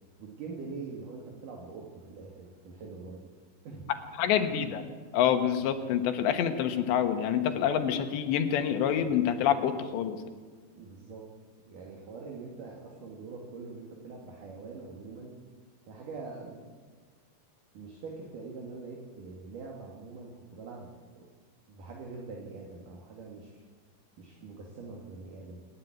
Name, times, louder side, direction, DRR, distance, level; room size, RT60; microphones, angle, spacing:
voice 1, 0.2-3.2 3.7-3.9 4.5-4.7 10.7-11.2 11.7-15.4 15.9-16.6 17.7-21.2 21.7-23.6 24.2-25.7, right 4 dB, 55° right, -1 dB, 3.6 m, -43 dB
voice 2, 4.2-4.8 5.1-10.2, left 9 dB, 90° left, 7 dB, 3.6 m, -27 dB
27.5 x 11.5 x 9.2 m, 1.5 s
omnidirectional pair, 4.9 m